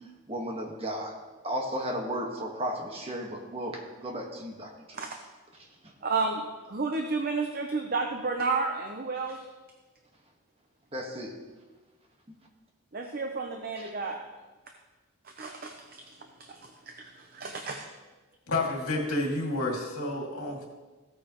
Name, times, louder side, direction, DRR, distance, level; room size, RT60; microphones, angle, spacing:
voice 1, 0.3-1.1 1.4-5.0 5.8-5.9 10.9-11.3 13.8-14.0, equal, 30° right, 1 dB, 1.4 m, -34 dB
voice 2, 6.0-9.4 12.9-14.2 15.2-16.0 16.4-17.8, right 4 dB, 45° right, 4 dB, 0.7 m, -32 dB
voice 3, 18.5-20.7, left 2 dB, 85° left, -1 dB, 2.3 m, -30 dB
15.0 x 8.8 x 3.0 m, 1.2 s
head